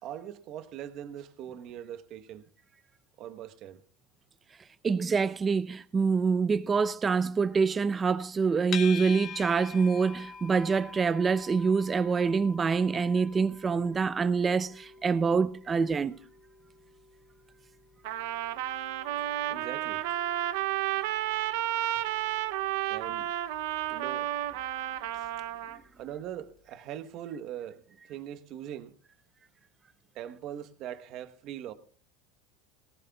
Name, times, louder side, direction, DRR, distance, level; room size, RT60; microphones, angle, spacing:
voice 1, 0.0-2.5 3.2-3.8 19.5-20.0 22.9-23.3 23.9-24.3 25.1-25.3 26.0-29.0 30.1-31.7, right 10 dB, 50° right, 1.0 m, -41 dB
voice 2, 4.8-16.2, right 5 dB, 20° right, 0.6 m, -26 dB
sound 1, 8.7-25.9, left 6 dB, 40° left, 1.8 m, -47 dB
Trumpet, 18.0-25.8, right 13 dB, 75° right, 0.7 m, -32 dB
19.5 x 18.0 x 2.3 m
supercardioid pair, 120°, 0 cm